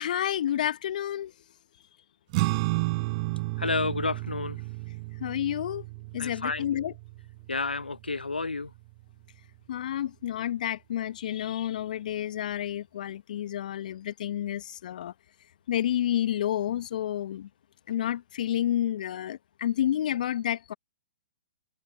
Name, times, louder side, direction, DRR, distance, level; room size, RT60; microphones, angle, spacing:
voice 1, 0.0-1.3 5.2-5.8 6.1-6.9 9.7-15.1 15.7-17.5 17.9-20.7, left 11 dB, 55° left, 1.1 m, -30 dB
sound 1, 2.3-9.0, right 24 dB, 40° right, 6.6 m, -32 dB
voice 2, 3.6-4.6 6.2-6.7 7.5-8.7, left 3 dB, 85° left, 1.0 m, -30 dB
figure-of-eight pair, 120°, 5 cm